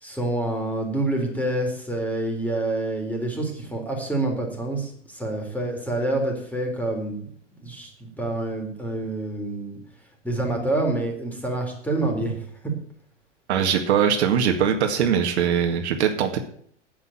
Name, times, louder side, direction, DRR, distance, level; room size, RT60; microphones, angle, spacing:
voice 1, 0.0-7.2 7.6-9.8 10.2-12.7, right 2 dB, 5° left, 1 dB, 4.0 m, -27 dB
voice 2, 13.5-16.4, right 8 dB, 60° right, 5 dB, 2.0 m, -21 dB
9.7 x 8.7 x 8.9 m, 0.63 s
hypercardioid pair, 100°, 36 cm